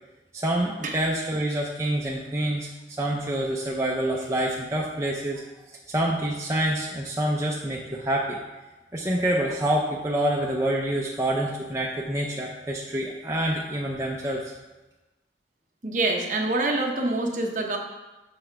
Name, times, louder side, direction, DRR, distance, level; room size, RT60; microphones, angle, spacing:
voice 1, 0.3-2.7 3.0-5.4 5.9-8.4 8.9-14.5, right 1 dB, 15° right, -3 dB, 0.5 m, -27 dB
voice 2, 15.8-17.8, right 2 dB, 45° right, 1 dB, 0.8 m, -25 dB
6.9 x 3.3 x 5.8 m, 1.1 s
head